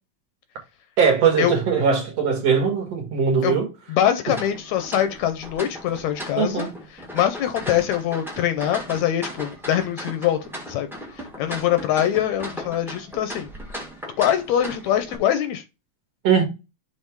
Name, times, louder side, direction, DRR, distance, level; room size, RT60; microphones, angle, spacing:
voice 1, 1.0-3.7 6.4-6.7 16.2-16.4, right 6 dB, 55° right, 2.7 m, -20 dB
voice 2, 3.9-6.7 6.9-10.4 10.7-13.5 14.2-15.6, left 10 dB, 75° left, 1.8 m, -23 dB
sound 1, 4.3-15.2, equal, 5° right, 0.4 m, -37 dB
6.6 x 3.4 x 4.6 m
omnidirectional pair, 3.5 m